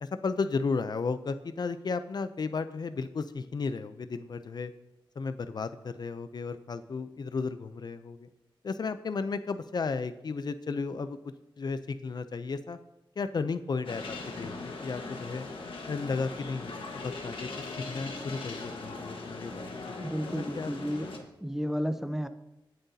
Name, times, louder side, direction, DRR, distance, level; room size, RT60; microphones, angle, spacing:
voice 1, 0.0-4.7 5.2-8.3 8.6-11.2 11.6-12.8 13.2-15.5 15.9-17.5 17.9-20.7, left 4 dB, 55° left, 11 dB, 0.5 m, -34 dB
sound 1, 13.8-21.2, left 3 dB, 85° left, 1.4 m, -40 dB
voice 2, 20.0-21.1 21.4-22.3, equal, 5° right, 10 dB, 0.5 m, -32 dB
18.0 x 7.7 x 2.8 m, 0.91 s
wide cardioid pair, 115°, 9 cm